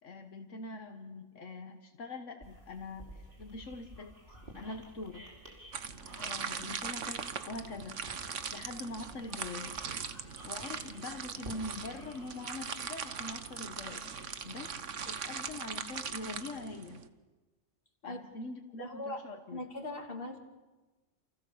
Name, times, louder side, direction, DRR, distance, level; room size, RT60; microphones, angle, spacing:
voice 1, 0.0-5.3 6.2-8.1 8.5-9.8 10.2-14.7 15.1-17.1 18.0-19.7, left 2 dB, 75° left, 5 dB, 1.7 m, -44 dB
sound 1, 2.4-16.4, right 1 dB, 40° right, 4.9 m, -53 dB
sound 2, 5.7-17.1, right 6 dB, 70° right, 1.5 m, -40 dB
voice 2, 18.8-19.2 19.5-20.4, left 1 dB, 45° left, 3 dB, 3.0 m, -39 dB
29.0 x 28.0 x 7.2 m, 1.2 s
omnidirectional pair, 1.3 m